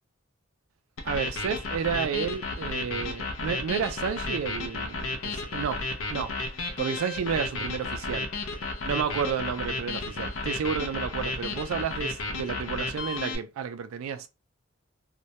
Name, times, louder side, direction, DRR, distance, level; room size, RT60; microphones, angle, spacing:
sound 1, 1.0-13.4, left 3 dB, 70° left, 0.5 m, -33 dB
voice 1, 1.0-5.8 6.1-6.3 6.8-8.3 8.8-14.3, right 7 dB, 85° right, 0.3 m, -31 dB
2.2 x 2.1 x 2.7 m
head